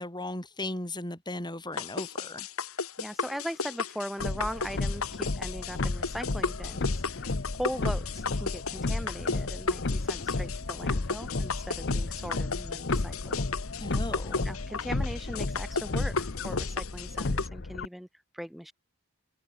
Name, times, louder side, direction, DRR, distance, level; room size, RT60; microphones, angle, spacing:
voice 1, 0.0-2.5 13.8-14.5, left 1 dB, 20° left, 4.8 m, -37 dB
sound 1, 1.8-17.5, left 4 dB, 75° left, 2.6 m, -34 dB
voice 2, 3.0-13.4 14.4-18.1 18.3-18.7, equal, ahead, 4.9 m, -39 dB
sound 2, 4.2-17.9, left 2 dB, 55° left, 0.9 m, -33 dB
head